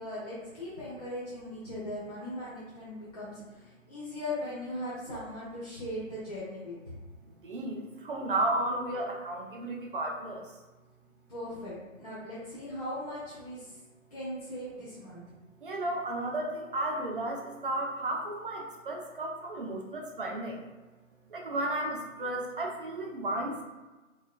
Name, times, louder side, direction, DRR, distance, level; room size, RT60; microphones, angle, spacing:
voice 1, 0.0-6.9 11.3-13.8 14.1-15.2, left 1 dB, 30° left, -9 dB, 0.6 m, -39 dB
voice 2, 7.2-10.5 15.6-20.6 21.3-23.6, right 1 dB, 40° right, -1 dB, 0.6 m, -33 dB
3.9 x 2.4 x 2.4 m, 1.2 s
figure-of-eight pair, 155°, 41 cm